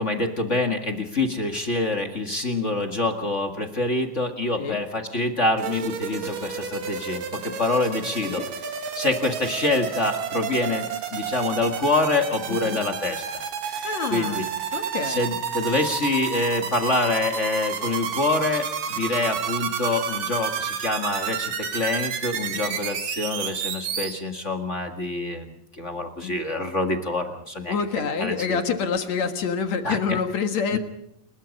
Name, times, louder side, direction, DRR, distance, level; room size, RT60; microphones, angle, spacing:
voice 1, 0.0-8.4 8.9-14.4 15.0-27.7 28.2-28.6 29.8-30.2 30.7-30.8, left 2 dB, 30° left, 5 dB, 1.5 m, -26 dB
sound 1, 5.6-24.1, right 7 dB, 75° right, 3.7 m, -31 dB
voice 2, 12.5-12.8 13.8-14.5 14.7-15.2 22.7-22.8 26.2-26.3 27.7-30.8, left 6 dB, 60° left, 7 dB, 2.6 m, -27 dB
29.5 x 21.5 x 5.3 m, 0.78 s
omnidirectional pair, 3.9 m